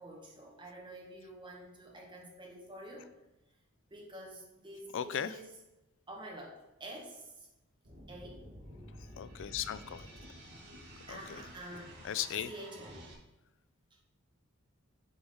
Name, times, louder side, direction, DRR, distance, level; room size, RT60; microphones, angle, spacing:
voice 1, 0.0-3.1 3.9-5.5 6.1-7.5 8.1-8.5 11.1-11.9 12.4-13.0 13.9-14.0, right 1 dB, 20° right, -2 dB, 1.8 m, -48 dB
voice 2, 4.9-5.3 9.2-10.1 11.1-11.2 12.0-12.5, left 9 dB, 60° left, 14 dB, 0.4 m, -36 dB
sound 1, 7.8-13.1, equal, 55° right, 2.1 m, -51 dB
7.9 x 4.9 x 3.9 m, 1.0 s
head